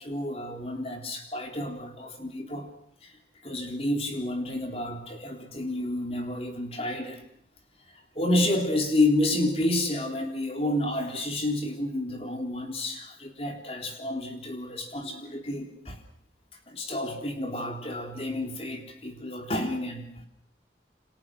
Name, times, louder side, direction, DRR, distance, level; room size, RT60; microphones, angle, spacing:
voice 1, 0.0-2.7 3.0-3.2 3.4-7.2 7.9-16.0 16.7-20.3, left 1 dB, 35° left, 4 dB, 3.8 m, -30 dB
29.0 x 26.0 x 6.3 m, 0.68 s
head